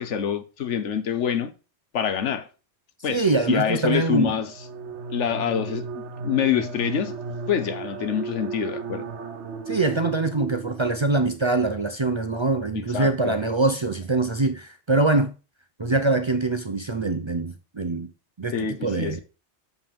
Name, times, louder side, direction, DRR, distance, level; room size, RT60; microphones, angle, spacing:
voice 1, 0.0-1.5 1.9-2.5 3.0-4.5 5.1-7.2 7.5-9.0 12.7-13.4 18.5-19.2, left 8 dB, 90° left, 1.3 m, -26 dB
voice 2, 3.1-4.3 9.7-15.3 15.8-18.1 18.4-19.2, right 3 dB, 35° right, 0.5 m, -24 dB
sound 1, 4.4-11.3, right 4 dB, 75° right, 1.1 m, -35 dB
7.0 x 5.6 x 5.2 m
omnidirectional pair, 1.2 m